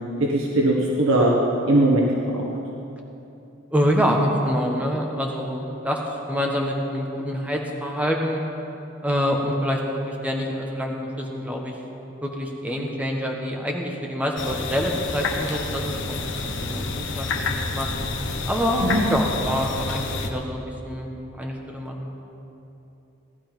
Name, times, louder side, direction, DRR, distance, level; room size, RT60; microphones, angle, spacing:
voice 1, 0.3-1.4 1.7-2.4 18.8-19.0, right 1 dB, 80° right, -3 dB, 1.5 m, -20 dB
voice 2, 3.7-6.0 6.3-8.4 9.0-11.7 12.2-17.9 18.5-21.1 21.4-22.1, equal, 5° right, 0 dB, 1.3 m, -26 dB
sound 1, 14.4-20.3, left 3 dB, 60° left, 1.2 m, -29 dB
18.0 x 11.5 x 5.3 m, 2.9 s
head